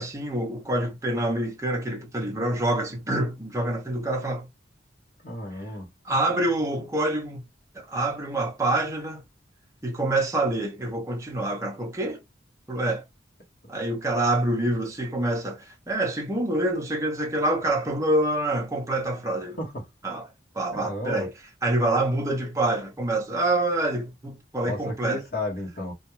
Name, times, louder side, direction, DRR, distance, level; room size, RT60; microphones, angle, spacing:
voice 1, 0.0-4.5 6.0-7.4 7.7-9.2 9.8-12.2 12.7-13.0 13.7-19.6 20.0-20.3 20.5-21.3 21.6-25.2, right 1 dB, 15° right, 0.6 m, -26 dB
voice 2, 5.2-5.9 19.6-19.8 20.7-21.3 24.6-25.9, left 1 dB, 50° left, 0.8 m, -33 dB
2.3 x 2.1 x 2.9 m
head